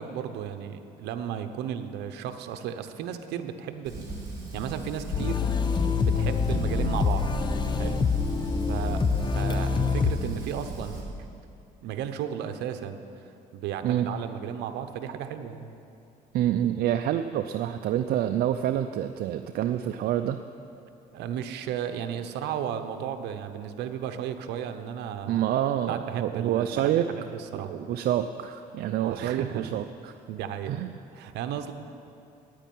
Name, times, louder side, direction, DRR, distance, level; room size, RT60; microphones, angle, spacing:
voice 1, 0.0-4.1 4.5-5.4 6.0-7.3 7.8-8.0 8.6-9.0 9.3-11.3 11.8-15.7 21.1-25.4 25.9-27.7 29.0-29.7 30.3-30.7 31.1-31.7, right 9 dB, 80° right, 8 dB, 0.9 m, -34 dB
Fire, 3.9-11.0, right 2 dB, 25° right, 3.6 m, -38 dB
sound 1, 5.1-10.1, left 4 dB, 25° left, 0.7 m, -25 dB
voice 2, 16.3-20.4 25.3-27.1 27.5-30.2 30.7-30.9, right 11 dB, 65° right, 7 dB, 0.5 m, -27 dB
9.9 x 9.2 x 9.2 m, 2.6 s
cardioid pair, 110°, 17 cm